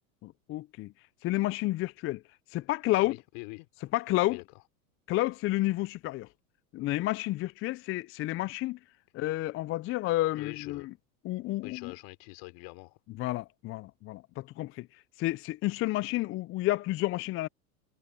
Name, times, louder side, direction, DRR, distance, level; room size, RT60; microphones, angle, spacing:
voice 1, 0.2-0.9 1.2-2.2 2.5-3.2 3.9-4.4 5.1-6.3 6.7-8.8 9.1-10.9 11.2-11.9 13.2-17.5, left 17 dB, 30° left, 0.4 m, -30 dB
voice 2, 2.9-3.7 4.3-4.4 10.4-10.9 11.6-13.0, left 31 dB, 60° left, 3.7 m, -44 dB
hypercardioid pair, 100°, 47 cm